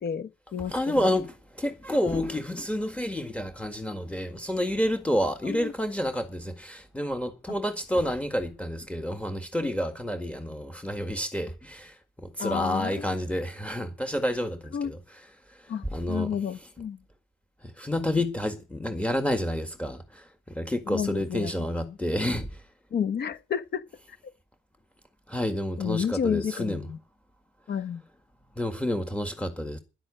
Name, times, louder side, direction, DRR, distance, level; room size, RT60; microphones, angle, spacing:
voice 1, 0.0-1.1 5.4-5.7 12.4-13.0 14.7-14.9 15.7-17.0 20.9-22.0 22.9-23.8 25.8-27.0 27.7-28.0, left 7 dB, 55° left, 1.3 m, -31 dB
voice 2, 0.7-15.0 15.5-16.4 17.6-22.6 25.3-26.8 28.6-29.8, left 1 dB, 5° left, 1.8 m, -29 dB
10.5 x 8.0 x 9.8 m
cardioid pair, 90°, 20 cm